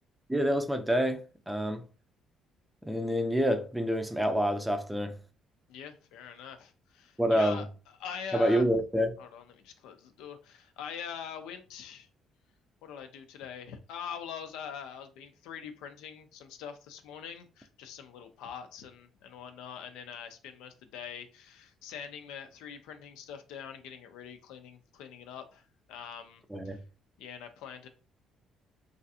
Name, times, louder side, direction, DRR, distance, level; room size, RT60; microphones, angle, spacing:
voice 1, 0.3-1.8 2.8-5.1 7.2-7.6 8.3-9.2 26.5-26.8, equal, 5° right, 0.5 m, -27 dB
voice 2, 5.7-7.7 8.0-8.7 9.2-12.1 12.8-25.6 25.9-26.8 27.2-27.9, left 7 dB, 90° left, 0.4 m, -43 dB
3.2 x 2.4 x 2.7 m
cardioid pair, 85°, 0 cm